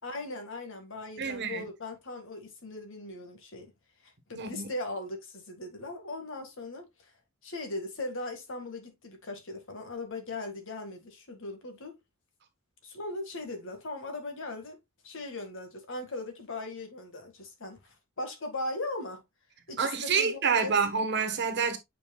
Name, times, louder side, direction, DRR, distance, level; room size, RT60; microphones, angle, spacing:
voice 1, 0.0-3.7 4.3-6.9 7.4-11.9 12.8-14.8 15.0-17.8 18.2-19.2 19.7-20.7, left 2 dB, 65° left, 1.9 m, -39 dB
voice 2, 1.2-1.6 4.3-4.7 19.8-21.8, right 5 dB, 55° right, 1.4 m, -28 dB
8.7 x 4.8 x 2.3 m
head